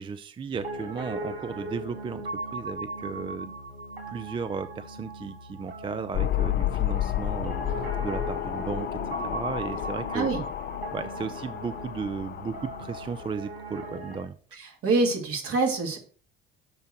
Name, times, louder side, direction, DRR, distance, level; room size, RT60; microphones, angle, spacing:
voice 1, 0.0-3.5 4.1-7.6 8.0-10.3 10.9-14.3, right 5 dB, 15° right, 12 dB, 0.4 m, -35 dB
Piano, 0.5-14.2, right 2 dB, 90° right, 1.1 m, -38 dB
sound 1, 6.1-13.3, left 12 dB, 35° left, 0.6 m, -31 dB
voice 2, 14.5-16.0, right 3 dB, 50° right, 2 dB, 2.4 m, -26 dB
6.7 x 4.5 x 6.4 m, 0.43 s
figure-of-eight pair, 60°, 29 cm